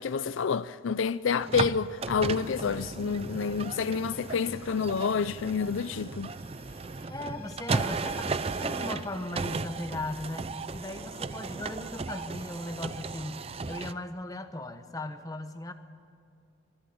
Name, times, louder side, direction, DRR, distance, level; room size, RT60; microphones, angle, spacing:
voice 1, 0.0-6.3, left 6 dB, 70° left, 0.4 m, -29 dB
sound 1, 1.4-13.9, right 4 dB, 30° right, 0.5 m, -35 dB
sound 2, 3.0-9.1, left 3 dB, 40° left, 2.7 m, -55 dB
voice 2, 7.1-15.7, left 1 dB, 15° left, 1.0 m, -38 dB
24.0 x 13.0 x 9.4 m
head